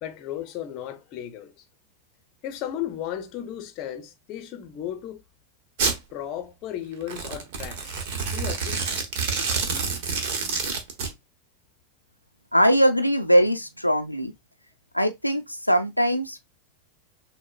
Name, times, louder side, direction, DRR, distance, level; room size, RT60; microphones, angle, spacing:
voice 1, 0.0-1.6 2.4-5.2 6.1-8.8, left 11 dB, 40° left, 0.7 m, -35 dB
Domestic sounds home sounds, 5.8-6.0 7.0-11.1, right 5 dB, 50° right, 1.1 m, -28 dB
voice 2, 12.5-14.3 14.9-16.4, equal, 90° left, 0.4 m, -21 dB
6.3 x 2.1 x 2.3 m
figure-of-eight pair, 90°, 0 cm